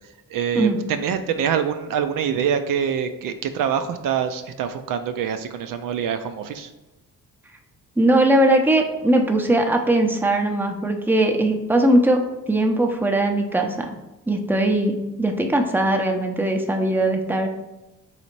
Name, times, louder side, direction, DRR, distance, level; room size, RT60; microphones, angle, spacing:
voice 1, 0.3-6.7, right 8 dB, 70° right, 8 dB, 0.5 m, -25 dB
voice 2, 8.0-12.2 12.5-13.9 14.3-17.5, right 1 dB, 5° right, 3 dB, 0.6 m, -20 dB
4.1 x 2.8 x 4.5 m, 1.0 s
cardioid pair, 80°, 34 cm